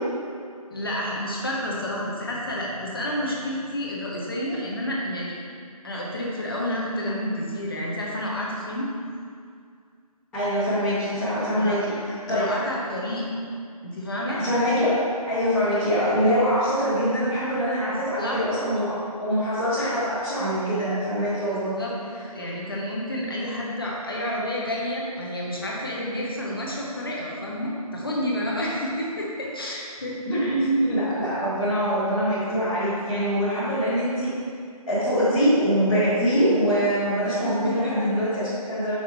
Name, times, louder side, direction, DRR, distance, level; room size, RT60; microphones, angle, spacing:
voice 1, 0.7-5.4 5.8-8.9 11.6-11.8 12.2-13.3 13.8-14.4 17.9-18.4 21.5-21.9 22.3-30.5 37.6-37.8, left 1 dB, 35° left, -3 dB, 1.0 m, -30 dB
voice 2, 10.3-12.5 14.4-15.0 15.3-21.7 30.2-34.3 34.9-39.0, equal, 5° left, -19 dB, 0.8 m, -23 dB
6.8 x 5.8 x 3.1 m, 2.2 s
figure-of-eight pair, 160°, 20 cm